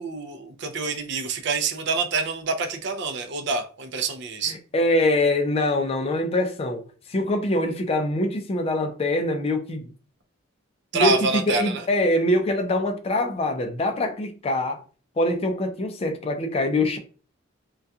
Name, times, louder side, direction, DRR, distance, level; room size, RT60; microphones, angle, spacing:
voice 1, 0.0-4.5 10.9-11.8, right 4 dB, 60° right, 0.4 m, -26 dB
voice 2, 4.4-6.8 7.1-9.9 10.9-14.8 15.2-17.0, left 1 dB, 30° left, 0.4 m, -24 dB
2.3 x 2.3 x 2.6 m
head